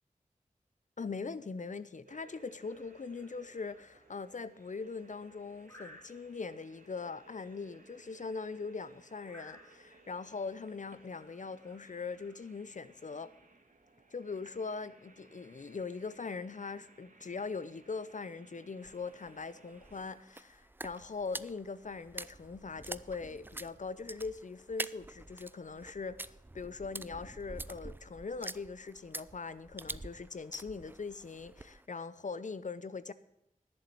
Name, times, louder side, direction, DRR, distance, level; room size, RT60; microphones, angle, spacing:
voice 1, 1.0-13.3 14.1-33.1, left 4 dB, 60° left, 0.7 m, -41 dB
sound 1, 2.1-20.1, right 2 dB, 70° right, 1.8 m, -61 dB
sound 2, 2.7-12.5, left 1 dB, 15° left, 2.9 m, -61 dB
sound 3, 18.8-31.9, right 2 dB, 15° right, 0.3 m, -47 dB
11.0 x 7.0 x 7.8 m
wide cardioid pair, 65°, 14 cm